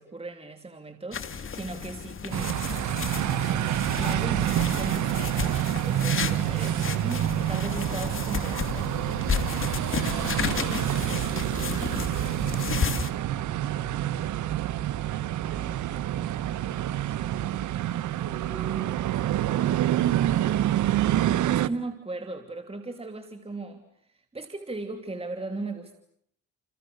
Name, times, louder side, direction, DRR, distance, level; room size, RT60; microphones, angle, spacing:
voice 1, 0.0-8.9 21.5-26.0, right 2 dB, 20° right, 6 dB, 3.0 m, -38 dB
sound 1, 1.1-13.1, left 6 dB, 45° left, 2.8 m, -33 dB
sound 2, 2.3-21.7, right 12 dB, 75° right, 1.2 m, -27 dB
voice 2, 10.5-11.7 13.3-14.7 15.1-17.6 18.2-20.6, right 5 dB, 50° right, 7 dB, 7.4 m, -46 dB
29.5 x 29.0 x 6.7 m, 0.67 s
cardioid pair, 90°, 30 cm